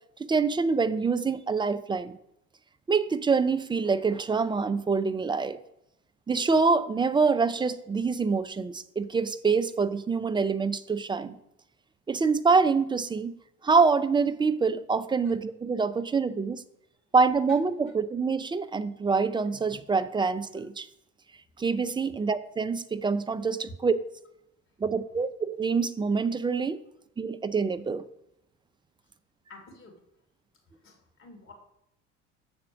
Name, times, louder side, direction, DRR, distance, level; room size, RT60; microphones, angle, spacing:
voice 1, 0.2-2.2 2.9-5.6 6.3-11.3 12.1-13.3 13.6-16.6 17.1-20.9 21.6-23.9 24.8-26.8 27.2-28.1, right 4 dB, 15° right, 12 dB, 0.4 m, -26 dB
voice 2, 24.8-25.2 29.5-29.9 30.8-31.5, left 2 dB, 35° left, 1 dB, 2.9 m, -50 dB
7.3 x 4.3 x 6.1 m, 0.83 s
hypercardioid pair, 80°, 36 cm